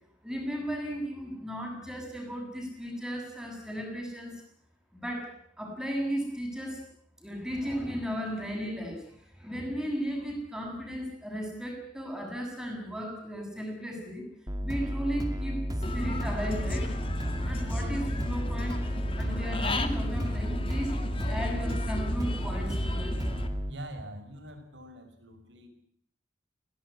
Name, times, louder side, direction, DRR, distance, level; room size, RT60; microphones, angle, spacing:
voice 1, 0.2-4.4 4.9-6.8 7.2-14.3 14.6-16.9 17.4-18.8 19.2-21.0 21.3-23.2, equal, 5° right, 1 dB, 7.2 m, -35 dB
sound 1, 14.5-23.7, equal, 20° right, 2.3 m, -32 dB
Human voice / Bird, 15.8-23.5, left 1 dB, 30° left, 2.3 m, -34 dB
voice 2, 23.7-25.7, right 1 dB, 80° right, 6 dB, 6.0 m, -44 dB
22.0 x 17.5 x 9.9 m, 0.64 s
head